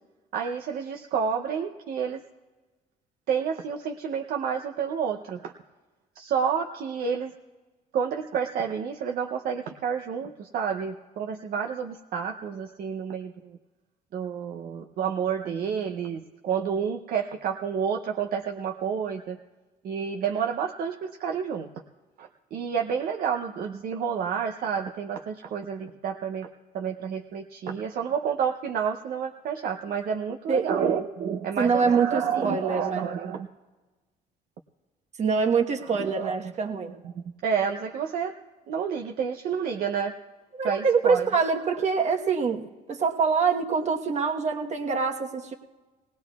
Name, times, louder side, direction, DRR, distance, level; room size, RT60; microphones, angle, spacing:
voice 1, 0.3-2.2 3.3-5.5 6.2-7.3 7.9-13.6 14.1-19.4 19.8-21.7 22.2-26.5 26.7-33.5 35.9-36.5 37.0-37.1 37.4-38.3 38.7-40.1 40.6-41.3 41.6-41.8, right 7 dB, 60° right, 4 dB, 0.7 m, -29 dB
voice 2, 31.6-33.1 35.2-36.9 40.6-42.6 42.9-45.5, right 5 dB, 40° right, 3 dB, 1.2 m, -25 dB
19.0 x 18.5 x 2.4 m, 1.2 s
cardioid pair, 110°, 17 cm